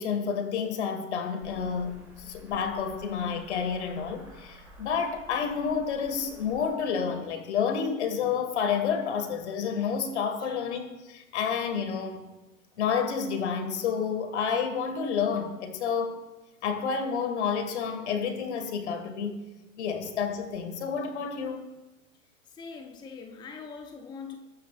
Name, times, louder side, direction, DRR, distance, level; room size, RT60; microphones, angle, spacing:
voice 1, 0.0-12.2 12.8-16.2 16.6-19.4 19.8-21.6, left 6 dB, 50° left, 7 dB, 1.9 m, -30 dB
sound 1, 1.4-6.8, right 1 dB, 5° right, 2.8 m, -51 dB
voice 2, 22.5-24.4, left 5 dB, 10° left, 5 dB, 0.8 m, -42 dB
20.5 x 9.6 x 2.5 m, 1.2 s
figure-of-eight pair, 100°, 42 cm